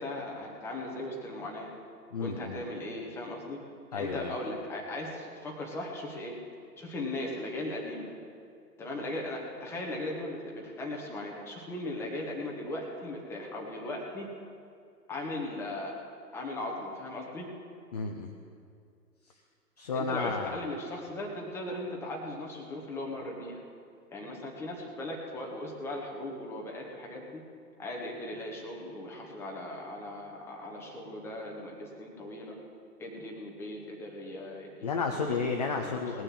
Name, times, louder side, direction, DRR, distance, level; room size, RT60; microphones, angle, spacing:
voice 1, 0.0-1.7 2.2-3.6 3.9-6.4 6.8-8.1 8.8-14.3 15.1-16.0 16.3-17.5 19.9-23.6 24.1-27.4 27.8-32.6 33.0-34.9 35.2-36.0, left 1 dB, 5° left, -1 dB, 1.1 m, -38 dB
voice 2, 2.1-2.6 3.9-4.3 17.9-18.3 19.8-20.7 34.8-36.2, left 4 dB, 25° left, 3 dB, 0.6 m, -32 dB
19.0 x 6.6 x 7.5 m, 2.3 s
figure-of-eight pair, 135°, 50 cm